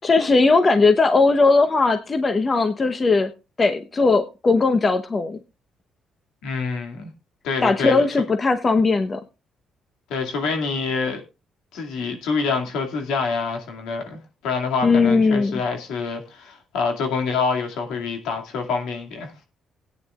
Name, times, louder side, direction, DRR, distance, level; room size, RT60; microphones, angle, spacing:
voice 1, 0.0-3.3 3.6-5.4 7.6-9.2 14.8-15.5, left 3 dB, 35° left, 1.0 m, -18 dB
voice 2, 6.4-7.1 7.4-8.0 10.1-11.2 11.7-19.3, left 4 dB, 90° left, 2.4 m, -26 dB
18.0 x 9.5 x 2.4 m
cardioid pair, 90°, 0 cm